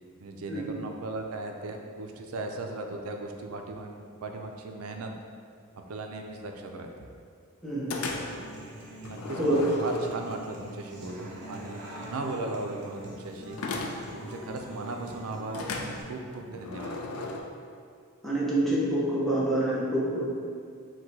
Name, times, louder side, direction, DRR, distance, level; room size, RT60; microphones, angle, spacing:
voice 1, 0.2-5.1 5.9-6.9 9.0-13.6 14.2-16.9, right 2 dB, 80° right, 3 dB, 0.4 m, -37 dB
voice 2, 7.6-8.0 9.4-9.6 18.2-20.2, right 1 dB, ahead, -8 dB, 0.6 m, -27 dB
sound 1, 7.9-8.5 9.0-10.5 13.6-14.2 15.5-17.4, left 3 dB, 85° left, 0.4 m, -36 dB
Human voice / Acoustic guitar, 8.0-16.0, equal, 55° right, 0.8 m, -43 dB
4.6 x 2.2 x 4.0 m, 2.2 s
head